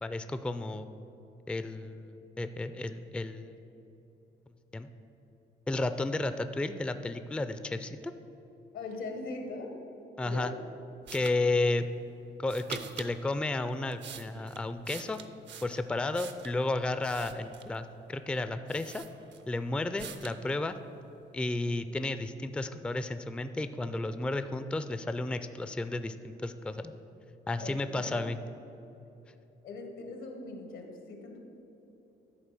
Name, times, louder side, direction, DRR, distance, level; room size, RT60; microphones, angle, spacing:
voice 1, 0.0-0.9 1.5-3.5 4.7-4.9 5.7-8.1 10.2-10.5 11.1-11.9 12.4-15.2 15.6-19.0 19.5-20.8 21.3-27.0 27.5-28.4, left 2 dB, 5° left, 11 dB, 0.3 m, -32 dB
voice 2, 8.7-9.7 10.2-10.5 27.6-28.1 29.6-31.4, left 3 dB, 85° left, 3 dB, 1.4 m, -40 dB
sound 1, 11.1-11.4 12.5-13.1 13.7-16.6 17.0-17.8 18.3-18.4 18.7-19.6 20.0-20.4, right 8 dB, 65° right, 0.7 m, -45 dB
10.5 x 4.3 x 6.8 m, 2.9 s
cardioid pair, 90°, 20 cm